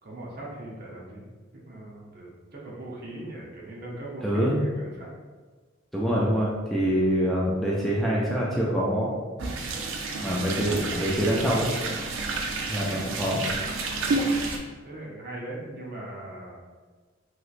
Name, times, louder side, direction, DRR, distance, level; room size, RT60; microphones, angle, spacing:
voice 1, 0.0-1.2 1.5-5.1 6.9-7.0 13.9-14.2 14.8-16.6, right 1 dB, 50° right, -4 dB, 0.7 m, -40 dB
voice 2, 4.2-4.6 5.9-9.2 10.2-11.7 12.7-13.4, equal, ahead, -6 dB, 0.3 m, -25 dB
sound 1, 9.4-14.6, right 3 dB, 80° right, 0.4 m, -30 dB
3.1 x 3.0 x 2.4 m, 1.4 s
head